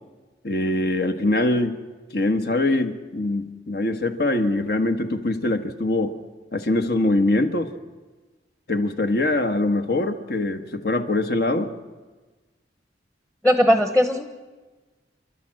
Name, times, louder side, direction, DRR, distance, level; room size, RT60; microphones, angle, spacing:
voice 1, 0.4-1.8 2.1-6.2 6.5-7.7 8.7-11.7, left 2 dB, 55° left, 6 dB, 1.3 m, -23 dB
voice 2, 13.4-14.2, equal, 5° left, 6 dB, 1.0 m, -18 dB
30.0 x 11.5 x 7.6 m, 1.3 s
head